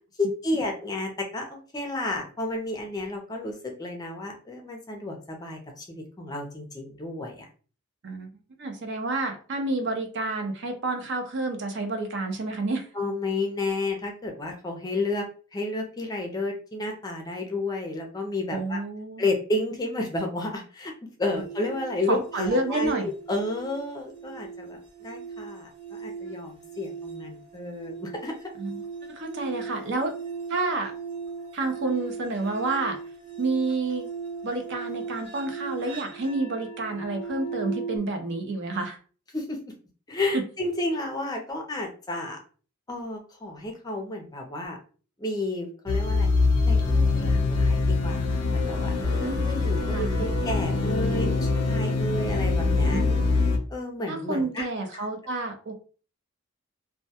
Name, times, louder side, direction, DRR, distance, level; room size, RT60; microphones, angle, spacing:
voice 1, 0.2-7.5 12.9-15.3 15.5-18.8 19.2-28.5 39.3-39.6 40.1-42.4 42.9-44.8 45.2-46.3 46.6-53.1 53.7-54.7 54.9-55.1, left 2 dB, 20° left, 2 dB, 0.5 m, -31 dB
voice 2, 8.6-12.9 18.5-19.2 22.1-23.1 28.6-28.8 29.1-30.1 30.5-30.9 31.5-33.0 33.4-34.1 34.4-39.0 40.3-40.4 49.2-49.4 49.8-50.3 52.8-53.3 54.1-55.7, right 2 dB, 55° right, 5 dB, 0.5 m, -29 dB
sound 1, 21.3-38.0, right 5 dB, 25° right, 0.8 m, -38 dB
sound 2, 45.9-53.6, left 3 dB, 90° left, 0.5 m, -24 dB
2.2 x 2.1 x 2.7 m, 0.39 s
head